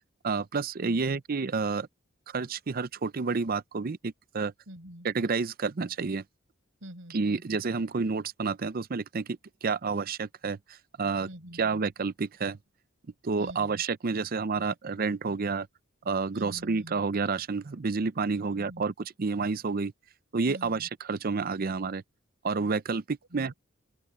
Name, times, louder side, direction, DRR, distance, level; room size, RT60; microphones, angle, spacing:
voice 1, 0.2-1.9 2.3-4.5 5.0-6.2 7.1-11.3 11.6-12.6 13.2-15.7 16.1-18.9 19.2-19.9 20.3-22.0 22.4-23.5, right 4 dB, 50° right, 0.6 m, -29 dB
voice 2, 4.7-5.1 6.8-7.4 11.2-11.8 13.4-13.8 16.3-17.0 18.3-18.9 20.5-20.9 23.3-23.5, equal, 75° right, 6.6 m, -46 dB
open air
head